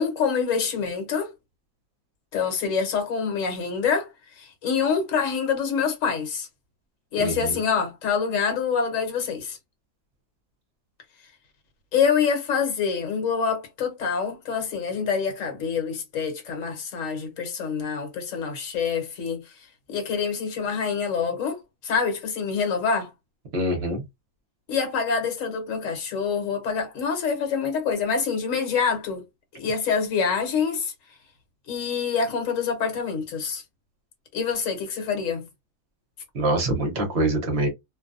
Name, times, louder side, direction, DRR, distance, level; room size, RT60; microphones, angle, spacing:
voice 1, 0.0-1.3 2.3-6.5 7.1-9.6 11.9-23.1 24.7-29.2 29.5-30.9 31.7-33.6 34.3-35.5, left 6 dB, 60° left, 1.2 m, -26 dB
voice 2, 7.2-7.5 23.5-24.0 36.3-37.7, right 1 dB, 50° right, 0.9 m, -24 dB
2.6 x 2.2 x 2.5 m
omnidirectional pair, 1.7 m